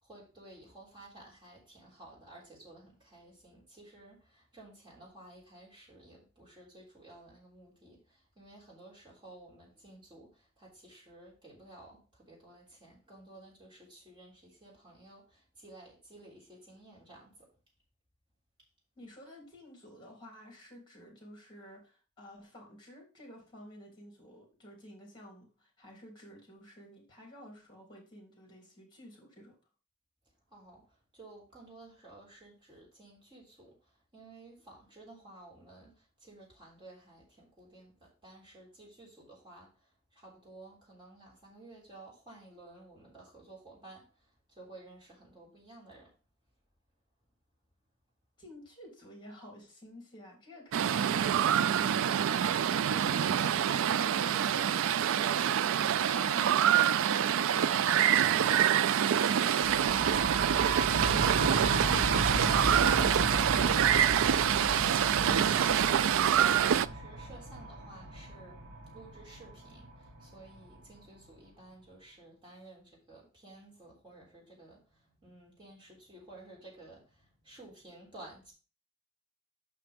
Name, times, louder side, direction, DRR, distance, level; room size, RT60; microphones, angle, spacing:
voice 1, 0.0-17.5 30.5-46.1 65.1-68.7 68.9-78.5, right 2 dB, 20° right, 3.5 m, -54 dB
voice 2, 18.9-29.6 48.4-64.3, left 1 dB, 20° left, 3.2 m, -52 dB
sound 1, 50.7-66.9, right 9 dB, 65° right, 0.3 m, -26 dB
sound 2, 59.6-71.0, right 1 dB, 45° right, 1.7 m, -35 dB
6.0 x 5.8 x 5.1 m
head